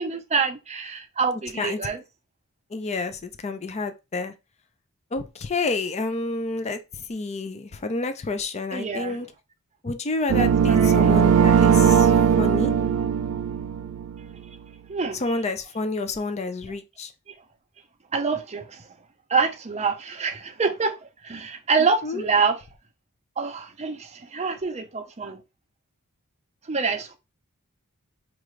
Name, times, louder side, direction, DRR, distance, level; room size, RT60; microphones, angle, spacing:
voice 1, 0.0-2.0 8.7-9.2 10.4-11.2 14.9-15.2 17.3-17.4 18.1-18.9 19.3-21.0 21.2-22.6 23.4-25.4 26.7-27.2, right 4 dB, 30° right, 0.6 m, -26 dB
voice 2, 2.7-4.3 5.1-6.8 7.1-9.3 9.8-12.7 15.2-17.1 22.0-22.2, left 3 dB, 30° left, 0.4 m, -29 dB
sound 1, 10.3-14.3, right 7 dB, 75° right, 0.3 m, -19 dB
4.6 x 2.5 x 3.1 m
head